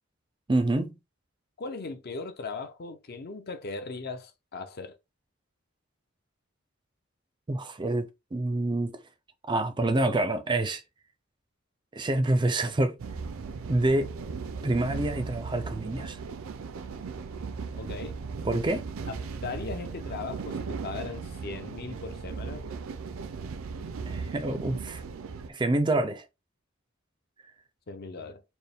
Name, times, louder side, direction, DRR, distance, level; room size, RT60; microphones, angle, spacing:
voice 1, 0.5-0.9 7.5-8.9 9.5-10.8 11.9-13.0 13.7-14.1 14.6-16.2 18.4-18.9 24.1-25.0 25.5-26.2, right 2 dB, 25° right, 0.4 m, -27 dB
voice 2, 1.6-4.9 17.7-18.2 19.4-22.7 27.9-28.4, left 4 dB, 50° left, 0.6 m, -38 dB
sound 1, 13.0-25.5, right 5 dB, 80° right, 0.4 m, -37 dB
4.4 x 2.1 x 3.4 m
head